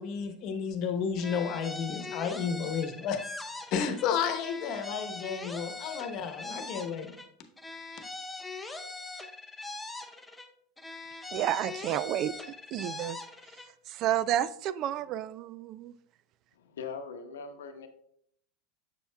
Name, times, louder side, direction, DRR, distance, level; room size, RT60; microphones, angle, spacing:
voice 1, 0.0-3.2 3.7-7.1, left 6 dB, 55° left, 6 dB, 1.0 m, -32 dB
sound 1, 1.2-4.1 4.4-7.3 7.6-10.5 10.8-13.7, left 3 dB, 10° left, 0.7 m, -42 dB
voice 2, 11.3-12.3 12.7-13.2 13.9-15.9, right 11 dB, 50° right, 18 dB, 0.3 m, -30 dB
voice 3, 16.5-17.9, left 5 dB, 85° left, 7 dB, 0.8 m, -42 dB
7.0 x 6.8 x 2.2 m, 0.69 s
hypercardioid pair, 95°, 0 cm